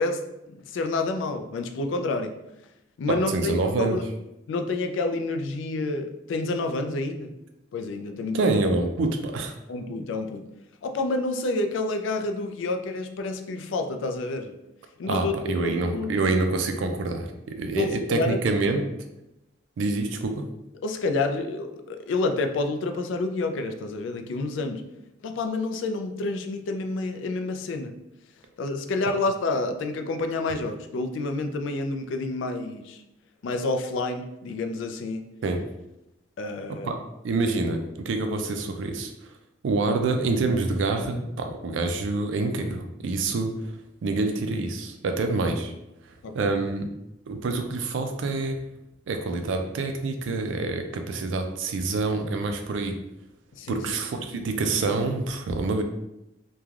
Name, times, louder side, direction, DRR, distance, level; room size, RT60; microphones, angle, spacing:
voice 1, 0.0-2.4 3.0-4.0 4.5-7.3 7.7-8.5 9.7-10.5 10.8-14.5 15.0-15.3 15.6-16.3 17.8-18.7 20.8-24.8 25.2-27.9 28.6-33.0 33.4-35.2 36.4-36.9 46.2-46.5 53.6-53.8, left 3 dB, 75° left, 6 dB, 0.3 m, -29 dB
voice 2, 3.1-4.0 8.3-9.6 15.1-18.9 19.8-20.5 35.4-35.6 36.7-37.0 37.2-39.1 39.6-43.5 44.0-45.7 46.3-46.9 47.3-48.6 49.1-53.0 53.7-55.8, right 3 dB, 75° right, 6 dB, 0.4 m, -26 dB
3.1 x 2.2 x 2.4 m, 0.88 s
head